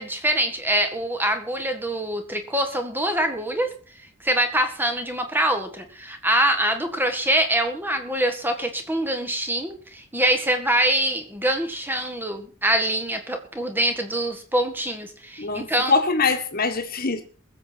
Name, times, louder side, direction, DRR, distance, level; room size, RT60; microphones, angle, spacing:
voice 1, 0.0-3.7 4.2-15.9, right 1 dB, 10° right, 1.8 m, -24 dB
voice 2, 15.4-17.2, left 4 dB, 45° left, 1.7 m, -23 dB
21.5 x 7.7 x 4.6 m
head